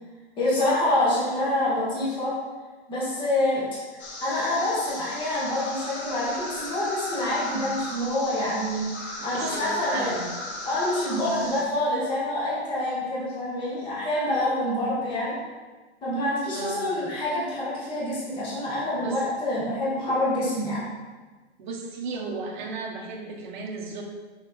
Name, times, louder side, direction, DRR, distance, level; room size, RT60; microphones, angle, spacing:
voice 1, 0.4-2.3 2.9-3.7 3.9-10.2 10.6-15.4 16.0-20.8, left 1 dB, 15° left, -8 dB, 1.8 m, -26 dB
sound 1, 4.0-11.6, left 1 dB, 75° left, 2.0 m, -37 dB
voice 2, 9.3-10.3 11.4-11.5 16.5-16.8 19.0-19.2 21.6-24.0, right 3 dB, 45° right, 0 dB, 1.4 m, -34 dB
6.5 x 4.8 x 4.4 m, 1.3 s
hypercardioid pair, 160°, 33 cm